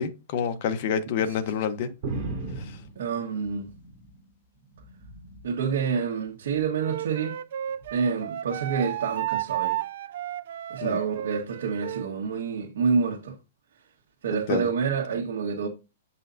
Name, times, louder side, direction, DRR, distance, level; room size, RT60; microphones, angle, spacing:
voice 1, 0.0-1.9 2.6-2.8 10.8-11.0 14.3-14.7, left 7 dB, 40° left, 1.0 m, -28 dB
sound 1, 2.0-4.2 4.6-5.5 6.4-6.8 7.8-8.0, right 3 dB, 35° right, 3.6 m, -37 dB
voice 2, 2.9-3.7 5.4-7.4 7.9-9.8 10.7-13.3 14.2-15.7, right 6 dB, 75° right, 1.4 m, -28 dB
Wind instrument woodwind instrument, 6.8-12.1, right 13 dB, 60° right, 0.4 m, -32 dB
8.0 x 5.5 x 2.7 m
hypercardioid pair, 165°, 0 cm